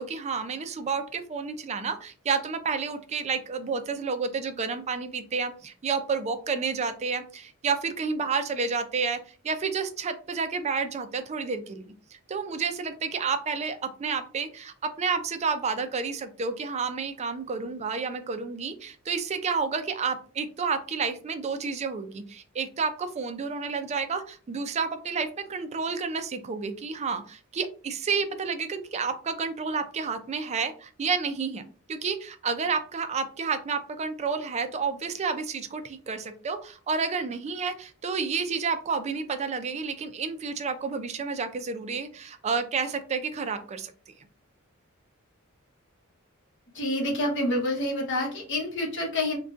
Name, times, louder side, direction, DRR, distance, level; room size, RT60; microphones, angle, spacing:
voice 1, 0.0-9.2 9.4-44.1, right 5 dB, 30° right, 8 dB, 0.4 m, -30 dB
voice 2, 46.7-49.4, left 1 dB, 60° left, 0 dB, 1.1 m, -28 dB
3.7 x 2.2 x 2.4 m, 0.38 s
head